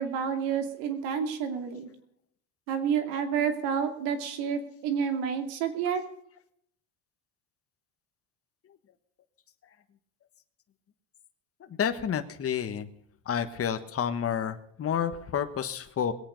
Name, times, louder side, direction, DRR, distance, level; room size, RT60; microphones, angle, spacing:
voice 1, 0.0-1.9 2.7-6.0, right 7 dB, 85° right, 7 dB, 2.7 m, -29 dB
voice 2, 11.8-12.9 13.3-16.1, left 8 dB, 30° left, 8 dB, 1.4 m, -30 dB
21.0 x 8.8 x 5.2 m, 0.68 s
cardioid pair, 115°, 45 cm